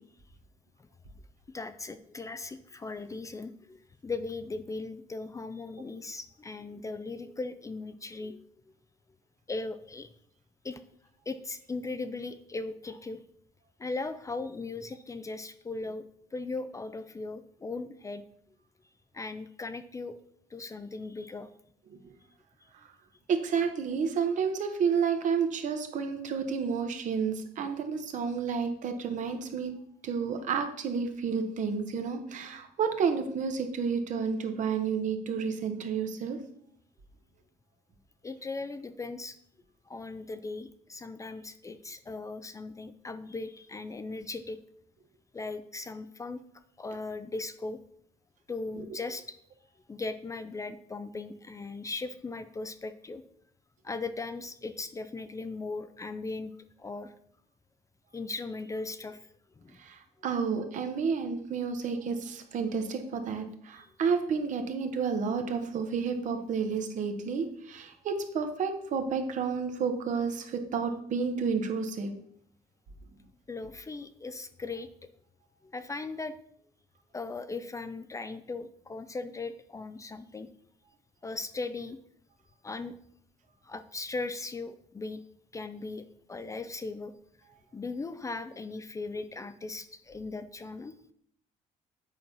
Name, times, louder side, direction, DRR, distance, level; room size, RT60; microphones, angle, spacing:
voice 1, 1.5-8.5 9.5-10.1 10.6-10.8 11.3-13.2 13.8-16.0 16.3-18.2 19.1-20.1 20.5-21.5 38.2-39.4 39.9-44.6 45.3-46.4 46.8-47.8 48.5-49.4 49.9-53.2 53.8-56.5 56.8-57.1 58.1-59.3 59.6-59.8 63.7-63.9 73.5-74.9 75.7-76.3 77.1-80.5 81.2-82.0 82.6-82.9 83.6-85.2 85.5-87.1 87.7-90.9, left 3 dB, 20° left, 11 dB, 0.5 m, -38 dB
voice 2, 23.3-29.7 30.0-36.4 48.8-48.9 59.8-72.1, right 6 dB, 55° right, 6 dB, 1.2 m, -30 dB
7.8 x 4.5 x 5.4 m, 0.67 s
cardioid pair, 95°, 15 cm